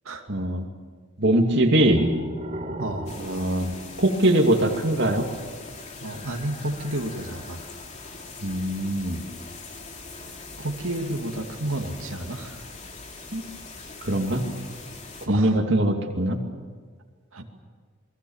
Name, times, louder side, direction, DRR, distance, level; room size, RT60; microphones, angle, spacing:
voice 1, 0.3-0.7 1.2-2.0 3.2-3.7 4.0-5.3 8.4-9.2 13.3-13.4 14.0-14.4 15.3-16.4, right 1 dB, 55° right, 2 dB, 2.6 m, -22 dB
sound 1, 1.5-4.7, right 1 dB, 35° right, 1.8 m, -34 dB
voice 2, 2.8-3.1 6.0-7.6 10.6-12.6 15.3-15.6 17.3-17.4, right 1 dB, 85° right, 2 dB, 2.5 m, -31 dB
sound 2, 3.1-15.3, left 3 dB, 35° left, 3.1 m, -42 dB
29.0 x 22.0 x 7.3 m, 1.5 s
head